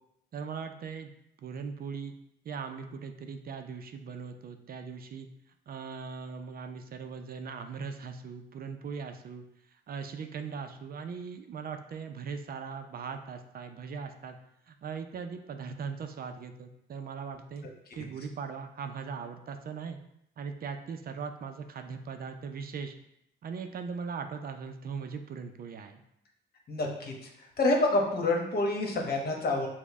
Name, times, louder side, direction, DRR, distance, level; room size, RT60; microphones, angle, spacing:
voice 1, 0.3-1.1 1.4-2.1 2.4-5.3 5.7-14.4 14.7-17.7 18.0-20.0 20.4-22.9 23.4-26.0, right 5 dB, 50° right, 6 dB, 0.4 m, -39 dB
voice 2, 26.7-27.1 27.6-29.7, left 2 dB, 50° left, 0 dB, 1.1 m, -27 dB
6.1 x 2.1 x 3.5 m, 0.79 s
cardioid pair, 90°, 20 cm